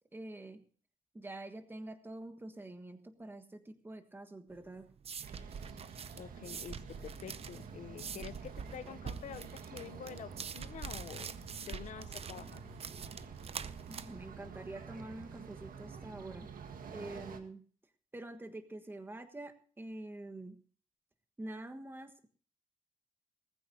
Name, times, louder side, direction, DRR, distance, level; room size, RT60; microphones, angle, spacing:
voice 1, 0.1-0.6 1.1-4.9 13.9-16.5 16.9-17.6 18.1-20.6 21.4-22.3, right 2 dB, 15° right, 8 dB, 1.5 m, -46 dB
sound 1, 4.5-15.9, right 6 dB, 45° right, 0.6 m, -46 dB
sound 2, 5.2-17.4, right 5 dB, 85° right, 1.6 m, -49 dB
voice 2, 6.2-11.3 11.7-12.6, left 8 dB, 60° left, 12 dB, 0.6 m, -48 dB
19.5 x 14.5 x 2.7 m, 0.43 s
wide cardioid pair, 145°, 14 cm